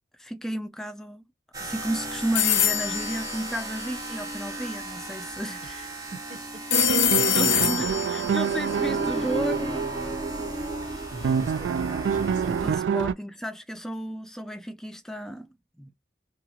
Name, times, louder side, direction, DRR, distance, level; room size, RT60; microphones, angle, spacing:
voice 1, 0.2-1.2 1.6-5.9 7.3-9.8 10.0-10.1 12.6-15.9, right 1 dB, 5° left, 0.4 m, -33 dB
sound 1, 1.5-12.7, right 1 dB, 20° right, 0.8 m, -35 dB
sound 2, 2.4-4.4 6.7-9.7, left 10 dB, 70° left, 0.5 m, -26 dB
voice 2, 6.1-7.9 11.1-12.6 15.8-15.9, right 2 dB, 40° right, 1.6 m, -42 dB
sound 3, 6.7-13.1, right 7 dB, 85° right, 0.3 m, -27 dB
3.0 x 2.4 x 2.3 m
head